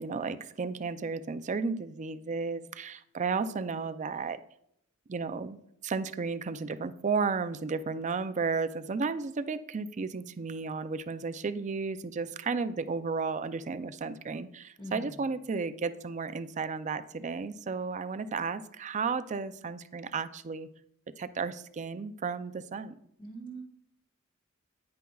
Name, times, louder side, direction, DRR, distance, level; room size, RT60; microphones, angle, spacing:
voice 1, 0.0-4.4 5.1-5.6 5.8-20.7 21.2-22.9, right 4 dB, 35° right, 11 dB, 0.4 m, -33 dB
voice 2, 14.8-15.1 23.2-23.6, right 2 dB, 20° left, -1 dB, 1.1 m, -42 dB
9.7 x 9.3 x 2.3 m, 0.73 s
head